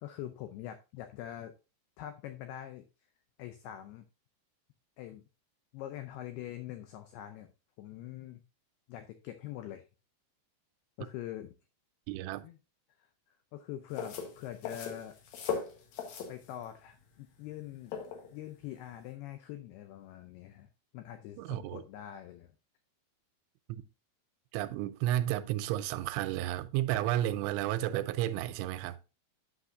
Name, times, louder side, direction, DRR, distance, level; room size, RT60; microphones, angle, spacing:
voice 1, 0.0-1.5 2.0-2.9 3.4-4.0 5.0-5.2 5.7-7.5 7.8-8.4 8.9-9.8 11.0-11.5 12.4-12.6 13.0-15.2 16.3-18.0 18.3-20.7 20.9-22.5, left 12 dB, 90° left, 2.2 m, -44 dB
voice 2, 12.1-12.5 21.4-21.8 23.7-23.8 24.5-29.0, right 13 dB, 90° right, 3.0 m, -32 dB
sound 1, 13.9-19.1, left 6 dB, 65° left, 2.4 m, -39 dB
9.9 x 6.2 x 2.6 m
omnidirectional pair, 5.4 m